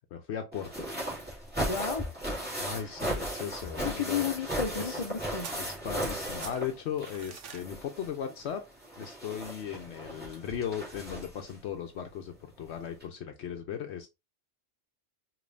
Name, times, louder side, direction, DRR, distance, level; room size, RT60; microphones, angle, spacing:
voice 1, 0.1-0.9 2.6-4.2 4.8-5.0 5.6-8.6 9.0-14.1, left 8 dB, 70° left, 0.9 m, -37 dB
sound 1, 0.5-7.3 7.6-11.5 12.6-12.7 13.0-13.1, right 1 dB, 10° right, 2.0 m, -36 dB
voice 2, 1.6-2.0 3.8-5.5, left 7 dB, 40° left, 0.5 m, -32 dB
sound 2, 5.4-6.1 6.4-7.7, right 7 dB, 90° right, 1.1 m, -46 dB
5.1 x 3.0 x 2.6 m
omnidirectional pair, 1.2 m